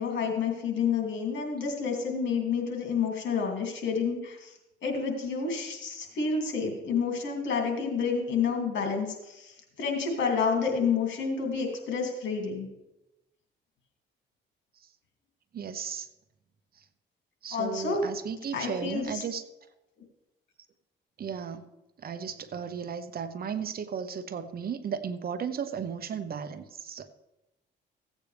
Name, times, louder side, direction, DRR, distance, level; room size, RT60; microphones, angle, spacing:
voice 1, 0.0-4.5 4.8-12.7 17.5-18.0 18.5-19.2, left 5 dB, 65° left, 2 dB, 2.7 m, -29 dB
voice 2, 15.5-16.1 16.8-16.9 17.4-19.4 21.2-21.6 22.0-27.1, right 7 dB, 50° right, 11 dB, 0.8 m, -35 dB
15.5 x 8.3 x 3.4 m, 0.95 s
cardioid pair, 90°, 20 cm